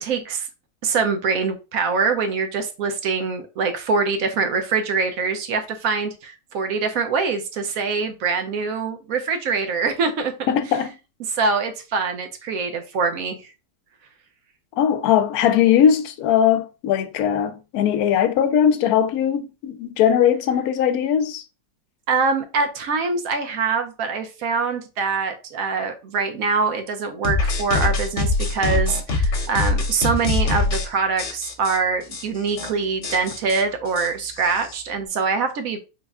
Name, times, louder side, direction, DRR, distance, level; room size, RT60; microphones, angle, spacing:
voice 1, 0.0-0.5 0.8-10.3 11.3-13.5 22.1-35.8, right 4 dB, 70° right, 1.1 m, -24 dB
voice 2, 10.5-10.9 14.8-21.4, left 9 dB, 75° left, 1.0 m, -19 dB
sound 1, 27.2-30.9 31.2-31.8 32.1-32.2 32.5-32.7 33.0-34.7, left 3 dB, 55° left, 1.2 m, -23 dB
3.9 x 2.2 x 3.5 m
omnidirectional pair, 1.6 m